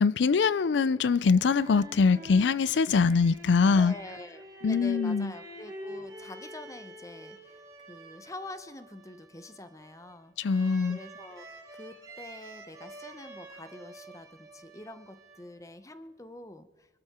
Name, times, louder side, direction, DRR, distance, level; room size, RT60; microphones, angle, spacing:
voice 1, 0.0-3.9 4.6-5.3 10.4-11.0, left 5 dB, 75° left, 0.4 m, -23 dB
sound 1, 1.2-15.8, equal, 20° right, 4.0 m, -46 dB
voice 2, 3.7-10.3 10.9-11.5 11.7-16.9, left 1 dB, 15° left, 0.9 m, -46 dB
24.0 x 13.0 x 4.3 m
head